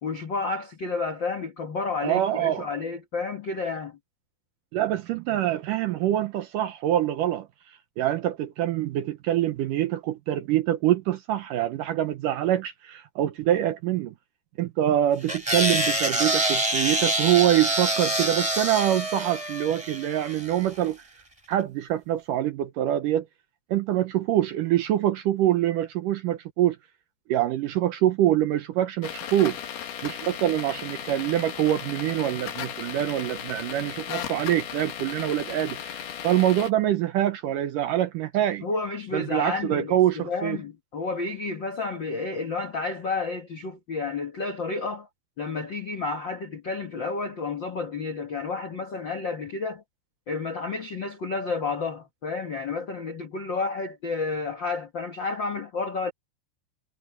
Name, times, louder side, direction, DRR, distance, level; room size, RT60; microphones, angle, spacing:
voice 1, 0.0-4.0 38.6-45.1 45.4-49.8 50.3-56.1, left 4 dB, 60° left, 1.2 m, -31 dB
voice 2, 2.0-2.7 4.7-7.5 8.0-14.1 14.6-21.0 21.5-23.3 23.7-26.8 27.3-29.6 30.0-38.6 39.1-40.6, right 12 dB, 75° right, 2.1 m, -25 dB
sound 1, 15.3-20.6, right 1 dB, 10° right, 3.8 m, -26 dB
sound 2, 29.0-36.7, left 9 dB, 85° left, 4.0 m, -36 dB
omnidirectional pair, 4.5 m